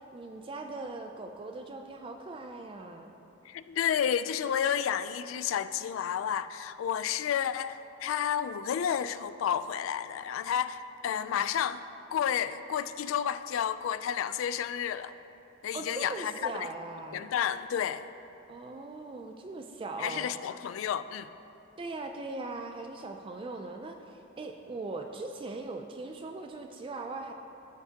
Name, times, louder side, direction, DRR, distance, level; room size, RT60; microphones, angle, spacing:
voice 1, 0.1-3.1 11.1-11.2 15.7-17.3 18.5-20.5 21.8-27.3, right 3 dB, 25° right, 4 dB, 0.3 m, -40 dB
voice 2, 3.5-11.8 12.1-15.1 15.6-16.7 17.1-18.1 20.0-21.3, left 9 dB, 90° left, 13 dB, 0.3 m, -31 dB
14.0 x 5.7 x 2.8 m, 2.8 s
head